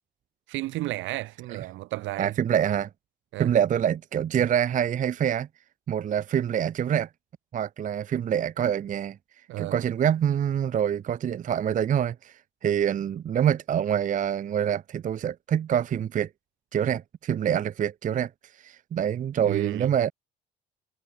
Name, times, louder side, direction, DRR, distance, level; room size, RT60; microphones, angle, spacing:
voice 1, 0.5-2.3 3.3-3.6 9.5-9.8 19.4-19.9, right 18 dB, 80° right, 2.7 m, -32 dB
voice 2, 2.2-2.9 3.4-5.5 5.9-7.1 7.5-9.2 9.6-16.3 16.7-20.1, right 9 dB, 40° right, 0.5 m, -26 dB
supercardioid pair, 70°, 19 cm